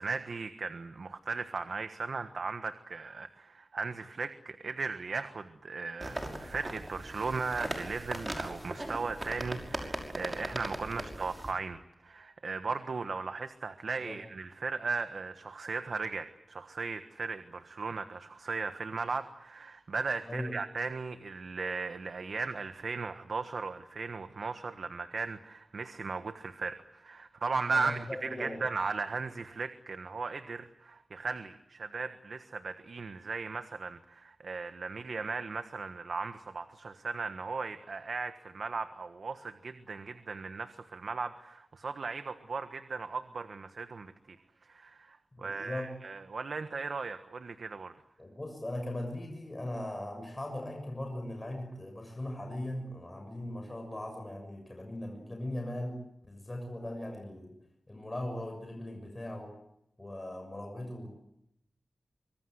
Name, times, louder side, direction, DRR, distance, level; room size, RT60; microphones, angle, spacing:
voice 1, 0.0-44.4 44.6-47.9, right 4 dB, 80° right, 8 dB, 1.4 m, -37 dB
sound 1, 6.0-11.5, right 1 dB, 20° right, 5.9 m, -39 dB
voice 2, 20.2-20.6 27.7-28.7 45.4-45.9 48.2-57.5 57.9-59.5 60.0-61.1, left 1 dB, 25° left, 3 dB, 6.8 m, -39 dB
25.0 x 24.5 x 8.0 m, 0.81 s
wide cardioid pair, 100°, 0 cm